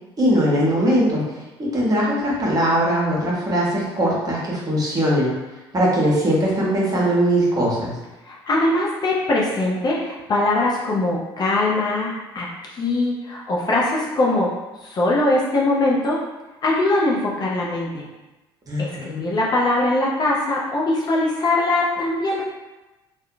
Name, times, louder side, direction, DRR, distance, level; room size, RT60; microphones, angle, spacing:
voice 1, 0.2-1.2 1.6-5.3 5.7-7.9 18.7-19.3, equal, 30° right, -5 dB, 0.9 m, -20 dB
voice 2, 8.2-12.5 12.7-14.5 14.8-16.2 16.6-18.0 18.8-22.4, left 2 dB, 30° left, -4 dB, 0.5 m, -21 dB
2.6 x 2.1 x 2.5 m, 1.1 s
figure-of-eight pair, 60°, 14 cm